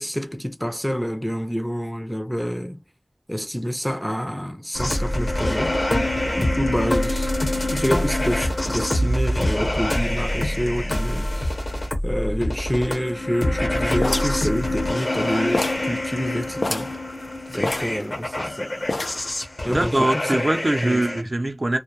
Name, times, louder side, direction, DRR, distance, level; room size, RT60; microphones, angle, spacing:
voice 1, 0.0-2.8 3.3-5.8 6.4-7.3 7.6-11.5 12.0-16.9 17.5-18.7 19.6-20.4 20.8-21.3, equal, 5° left, 0.4 m, -27 dB
sound 1, 4.7-21.2, left 1 dB, 70° left, 0.8 m, -25 dB
sound 2, 14.0-15.2 15.5-15.9 16.2-16.3 16.6-17.0 17.6-18.5 18.9-19.4, left 2 dB, 85° left, 0.4 m, -27 dB
voice 2, 19.7-21.8, right 1 dB, 60° right, 0.5 m, -22 dB
2.1 x 2.1 x 2.9 m
wide cardioid pair, 50°, 0 cm